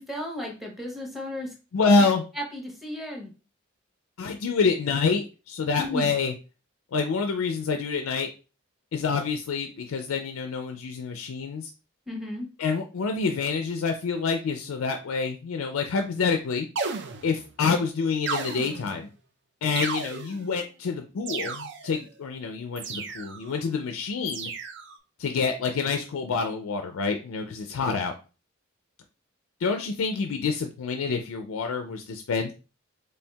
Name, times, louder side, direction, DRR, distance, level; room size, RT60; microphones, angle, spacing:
voice 1, 0.0-1.5 2.0-2.1 2.4-3.3 5.8-6.1 12.1-12.5, left 1 dB, ahead, 0 dB, 0.8 m, -34 dB
voice 2, 1.7-2.2 4.2-6.3 6.9-8.3 8.9-11.7 12.6-16.7 17.2-19.1 19.6-24.5 25.2-28.1 29.6-32.5, left 4 dB, 85° left, 6 dB, 0.4 m, -27 dB
sound 1, 16.7-17.5 18.2-19.0 19.7-20.5 21.2-22.0 22.8-23.5 24.3-25.0, right 5 dB, 55° right, 0.5 m, -34 dB
4.3 x 3.2 x 2.3 m, 0.33 s
head